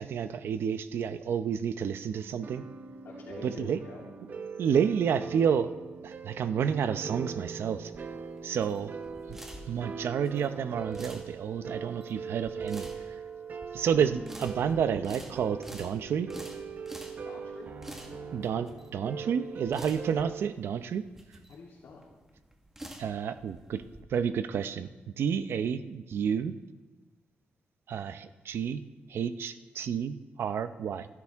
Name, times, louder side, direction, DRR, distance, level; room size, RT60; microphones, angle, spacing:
voice 1, 0.0-2.6 3.4-3.8 4.6-5.7 6.0-7.9 8.4-8.9 9.7-12.9 13.7-16.3 18.3-21.0 23.0-23.8 24.1-24.9 25.2-26.5 27.9-28.8 29.1-31.1, right 7 dB, 75° right, 11 dB, 0.7 m, -30 dB
sound 1, 2.1-20.5, right 5 dB, 45° right, 1.0 m, -41 dB
voice 2, 3.0-4.1 17.2-17.7 21.5-22.1, left 3 dB, 80° left, -6 dB, 3.2 m, -46 dB
sound 2, 7.5-24.0, right 1 dB, 10° right, 1.6 m, -49 dB
26.5 x 12.5 x 3.6 m, 1.2 s
wide cardioid pair, 170°, 4 cm